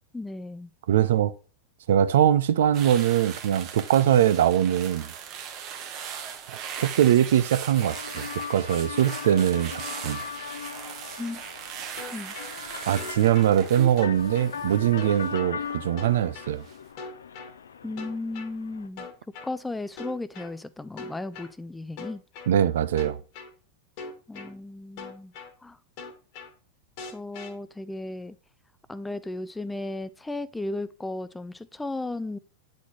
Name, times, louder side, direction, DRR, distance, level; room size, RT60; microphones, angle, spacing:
voice 1, 0.1-0.7 11.2-11.4 12.1-12.4 17.8-19.1 19.4-22.2 24.3-25.3 25.6-25.8 27.1-28.4 28.9-32.4, left 2 dB, 10° left, 0.4 m, -35 dB
voice 2, 0.9-1.3 1.9-5.1 6.5-10.2 12.9-16.6 22.5-23.2, right 10 dB, 70° right, 0.4 m, -22 dB
sound 1, 2.7-16.1 16.4-16.8, right 8 dB, 45° right, 0.9 m, -39 dB
sound 2, 7.8-18.9, left 7 dB, 80° left, 0.5 m, -39 dB
sound 3, 12.0-12.5 13.0-13.5 14.0-14.5 15.0-15.5 16.0-16.5 17.0-17.5 18.0-18.5 19.0-19.5 20.0-20.5 21.0-21.5 22.0-22.5 23.0-23.5 24.0-24.5 25.0-25.5 26.0-26.5 27.0-27.5, left 4 dB, 50° left, 1.4 m, -40 dB
8.3 x 4.1 x 3.0 m
hypercardioid pair, 95°, 0 cm